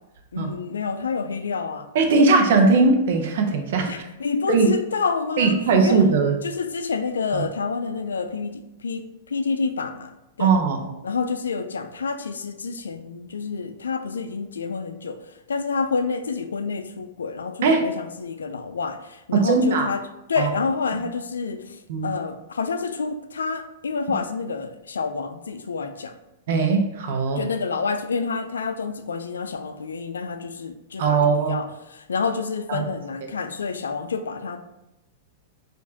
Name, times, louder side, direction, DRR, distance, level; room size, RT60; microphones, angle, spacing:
voice 1, 0.3-1.9 3.9-5.5 5.8-6.0 6.4-10.5 11.0-15.2 15.5-20.0 20.3-21.8 22.0-26.1 27.4-34.6, left 5 dB, 90° left, 9 dB, 0.3 m, -28 dB
voice 2, 1.9-3.9 4.5-4.7 5.4-6.4 7.3-7.4 10.4-10.8 17.6-17.8 19.3-19.9 20.4-20.5 20.9-21.0 21.9-22.1 26.5-27.4 31.0-31.6 32.7-32.9, right 4 dB, 65° right, 4 dB, 0.7 m, -19 dB
4.6 x 2.6 x 2.8 m, 0.94 s
hypercardioid pair, 115°, 0 cm